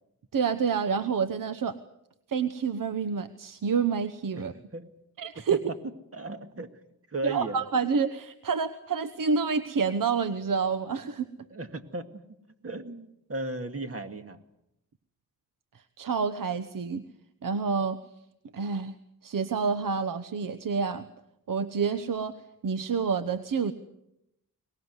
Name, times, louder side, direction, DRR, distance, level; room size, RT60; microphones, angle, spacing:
voice 1, 0.3-1.7 2.3-4.5 5.2-5.6 7.2-11.3 16.0-17.0 17.4-18.0 18.5-19.0 19.2-21.1 21.5-22.4 22.6-23.7, right 5 dB, 65° right, 11 dB, 1.1 m, -28 dB
voice 2, 6.1-6.7 7.1-7.6 11.5-12.2 12.6-14.4, right 2 dB, 40° right, 7 dB, 2.1 m, -35 dB
23.0 x 19.5 x 8.1 m, 0.83 s
wide cardioid pair, 80°, 35 cm